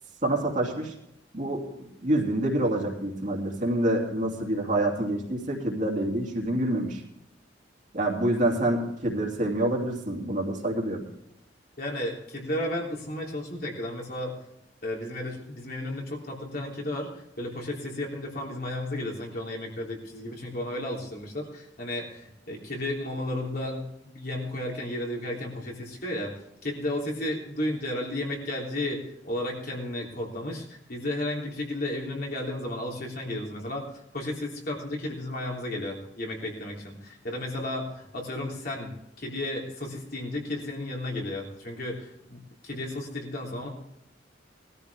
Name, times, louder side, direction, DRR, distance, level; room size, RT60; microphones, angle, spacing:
voice 1, 0.2-0.9 1.3-7.0 7.9-11.1, right 1 dB, 40° right, 0 dB, 2.7 m, -27 dB
voice 2, 11.8-14.3 14.8-26.3 26.6-43.7, left 1 dB, 50° left, -1 dB, 3.4 m, -33 dB
19.5 x 13.5 x 3.5 m, 0.78 s
head